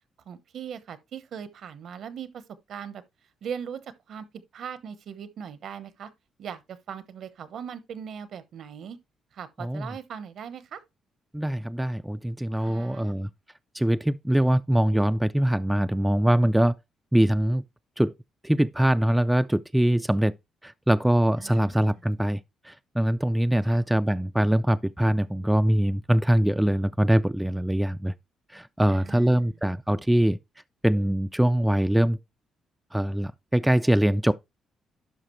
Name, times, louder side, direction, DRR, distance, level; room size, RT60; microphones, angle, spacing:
voice 1, 0.3-2.4 2.7-3.0 3.4-3.8 4.1-6.1 6.4-9.0 9.3-10.8 12.6-13.1 21.4-21.9 23.7-23.8 28.9-29.4, right 7 dB, 65° right, 0.9 m, -39 dB
voice 2, 9.6-10.0 11.3-13.3 13.7-16.8 17.1-17.6 18.0-18.1 18.4-20.3 20.6-22.4 22.6-28.1 28.5-30.4 30.8-32.2 32.9-34.3, right 1 dB, 5° right, 0.4 m, -23 dB
11.5 x 5.1 x 3.1 m
cardioid pair, 90°, 0 cm